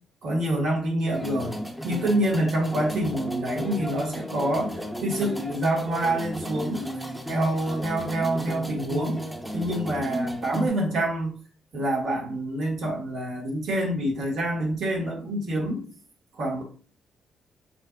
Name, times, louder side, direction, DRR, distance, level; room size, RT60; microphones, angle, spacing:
voice 1, 0.2-1.6 1.8-6.9 7.2-9.2 9.5-11.4 11.7-15.8 16.4-16.6, right 1 dB, 70° right, 0 dB, 1.1 m, -27 dB
sound 1, 1.1-10.7, right 1 dB, 5° right, 0.6 m, -33 dB
4.2 x 2.0 x 2.3 m, 0.41 s
supercardioid pair, 70°, 0 cm